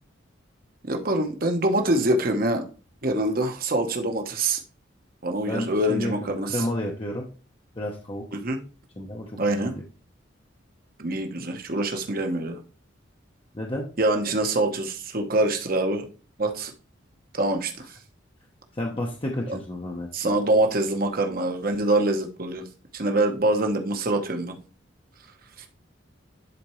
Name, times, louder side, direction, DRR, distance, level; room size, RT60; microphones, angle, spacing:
voice 1, 0.8-2.7 3.0-4.6 5.2-6.6 8.3-8.6 9.4-9.7 11.0-12.6 14.0-16.1 16.4-16.7 17.3-17.8 20.1-22.6 22.9-24.5 25.6-25.7, right 1 dB, 45° right, 4 dB, 1.1 m, -24 dB
voice 2, 5.5-7.2 7.7-8.2 9.0-9.8 13.5-13.8 18.7-20.4, left 1 dB, 25° left, -1 dB, 0.9 m, -31 dB
11.0 x 4.3 x 3.1 m, 0.36 s
head